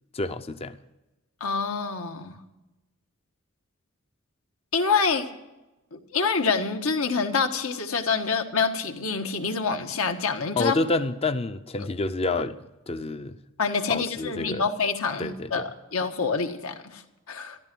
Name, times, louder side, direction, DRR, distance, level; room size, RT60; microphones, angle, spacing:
voice 1, 0.1-0.8 10.6-12.6 12.9-13.4 13.9-14.6 15.2-15.6, left 2 dB, 25° left, 10 dB, 0.6 m, -28 dB
voice 2, 1.4-2.4 4.7-5.3 5.9-10.7 13.6-17.0 17.3-17.6, left 5 dB, 75° left, 5 dB, 1.5 m, -26 dB
14.0 x 12.5 x 6.1 m, 1.0 s
head